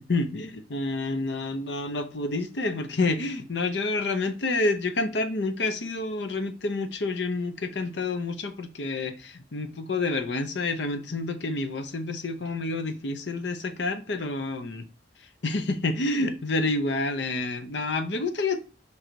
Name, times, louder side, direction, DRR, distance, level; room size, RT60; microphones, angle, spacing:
voice 1, 0.1-14.9 15.4-18.6, left 2 dB, 75° left, 0.8 m, -28 dB
5.5 x 3.9 x 4.6 m
head